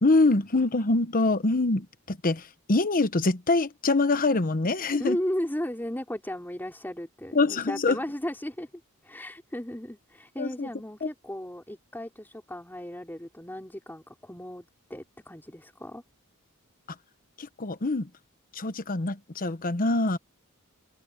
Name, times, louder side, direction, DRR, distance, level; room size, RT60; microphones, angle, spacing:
voice 1, 0.0-5.2 7.3-8.0 10.4-10.7 11.0-11.1 17.4-18.1 18.5-20.2, left 2 dB, 40° left, 1.0 m, -25 dB
voice 2, 5.0-8.7 9.0-14.6 14.9-16.0, equal, 10° left, 4.5 m, -35 dB
head